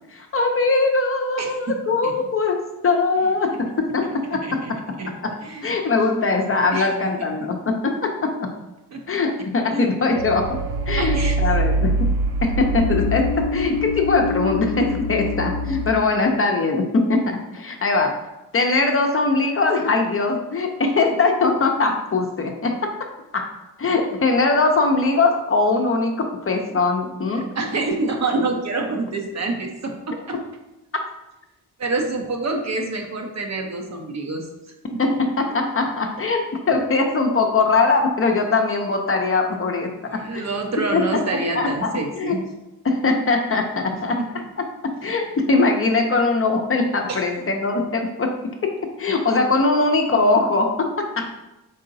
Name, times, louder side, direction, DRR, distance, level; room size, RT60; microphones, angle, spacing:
voice 1, 0.1-4.8 5.1-5.4 5.6-8.5 9.1-10.6 10.9-12.1 12.4-18.2 18.5-23.1 23.3-23.5 23.8-27.5 35.0-40.4 40.9-41.2 41.5-41.9 42.2-42.4 42.8-51.3, left 3 dB, 35° left, 3 dB, 0.6 m, -21 dB
voice 2, 1.4-1.7 2.0-2.1 4.3-4.7 5.0-5.1 5.4-5.7 6.7-7.1 7.4-7.5 8.9-9.0 9.7-9.9 11.0-11.4 27.3-30.4 31.8-34.5 34.9-35.2 40.0-42.4 43.9-44.3 47.1-47.2, right 3 dB, 45° right, 3 dB, 0.8 m, -27 dB
sound 1, 10.2-15.9, right 1 dB, 80° right, 0.5 m, -24 dB
4.0 x 3.6 x 2.6 m, 0.99 s
supercardioid pair, 45°, 39 cm